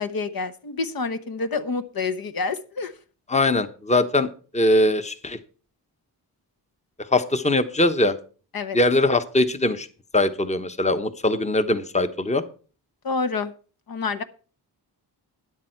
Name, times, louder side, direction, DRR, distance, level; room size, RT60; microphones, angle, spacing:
voice 1, 0.0-2.9 8.5-8.8 13.0-13.5 13.9-14.2, left 4 dB, 55° left, 9 dB, 1.1 m, -28 dB
voice 2, 3.3-4.3 4.5-5.4 7.1-8.1 8.7-9.9 10.1-12.4, left 2 dB, 15° left, 10 dB, 1.0 m, -21 dB
12.5 x 9.8 x 4.5 m, 0.38 s
cardioid pair, 75°, 41 cm